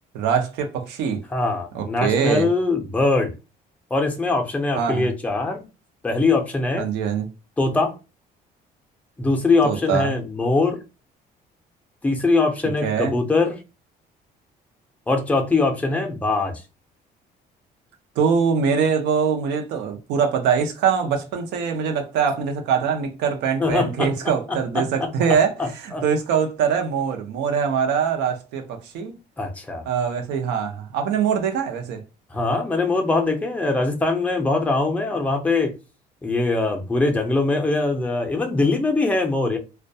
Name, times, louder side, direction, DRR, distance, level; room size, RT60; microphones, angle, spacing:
voice 1, 0.1-1.2 1.7-2.5 4.8-5.1 6.8-7.3 9.6-10.2 12.8-13.1 18.2-29.1 29.9-32.0, right 6 dB, 85° right, 0.5 m, -23 dB
voice 2, 1.3-3.3 3.9-5.6 6.0-6.9 7.6-7.9 9.2-10.8 12.0-13.6 15.1-16.5 23.6-24.1 24.5-25.1 25.6-26.0 29.4-29.8 32.3-35.7 36.2-39.6, left 3 dB, 10° left, 0.5 m, -22 dB
2.2 x 2.2 x 2.6 m
cardioid pair, 110°, 17 cm